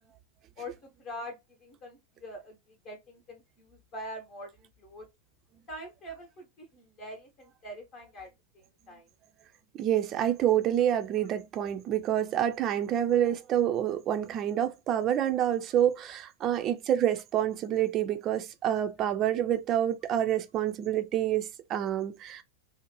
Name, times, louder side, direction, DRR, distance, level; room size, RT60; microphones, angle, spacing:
voice 1, 0.6-2.6 2.8-5.1 5.7-8.3 8.5-9.1 15.7-15.8, equal, 35° left, 0.9 m, -44 dB
voice 2, 9.7-22.4, right 10 dB, 30° right, 0.4 m, -27 dB
2.5 x 2.0 x 3.1 m
figure-of-eight pair, 90°, 0 cm